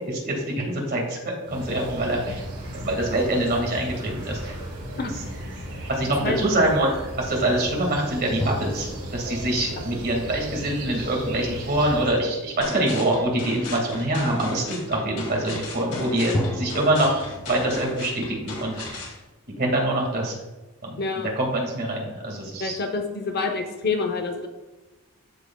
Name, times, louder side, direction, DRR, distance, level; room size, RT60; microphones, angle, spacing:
voice 1, 0.1-1.2 1.5-2.4 2.8-4.6 5.9-6.9 7.2-19.0 19.6-20.4 20.8-21.0 21.4-22.8, right 1 dB, 45° right, 0 dB, 1.9 m, -25 dB
sound 1, 1.4-12.2, right 1 dB, 80° right, 2.5 m, -36 dB
sound 2, 8.4-11.1 16.3-19.3, left 1 dB, 15° left, 0.4 m, -35 dB
sound 3, 12.6-19.2, left 2 dB, 90° left, 2.4 m, -36 dB
voice 2, 21.0-21.3 22.6-24.5, left 4 dB, 45° left, 5 dB, 0.8 m, -27 dB
13.5 x 4.8 x 2.3 m, 1.1 s
head